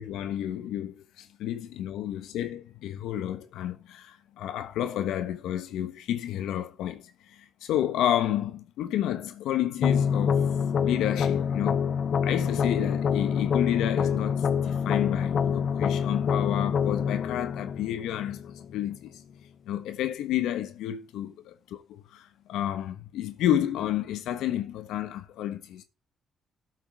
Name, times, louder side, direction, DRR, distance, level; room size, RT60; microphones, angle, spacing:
voice 1, 0.0-7.0 7.6-10.4 10.8-11.8 12.2-18.4 18.7-19.1 19.7-25.8, left 11 dB, 90° left, 1.2 m, -30 dB
sound 1, 9.8-18.8, left 7 dB, 55° left, 0.6 m, -26 dB
12.5 x 8.1 x 3.5 m
cardioid pair, 90°, 0 cm